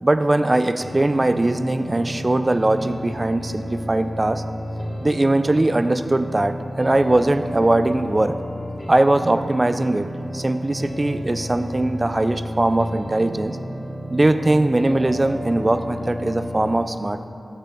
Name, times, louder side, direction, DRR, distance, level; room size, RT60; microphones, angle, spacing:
voice 1, 0.0-4.4 5.0-8.3 8.9-10.1 10.3-13.6 14.1-17.3, right 2 dB, 30° right, 10 dB, 0.4 m, -20 dB
sound 1, 0.8-16.8, equal, 50° left, 1.4 m, -32 dB
6.8 x 5.9 x 6.1 m, 2.5 s
cardioid pair, 55°, 0 cm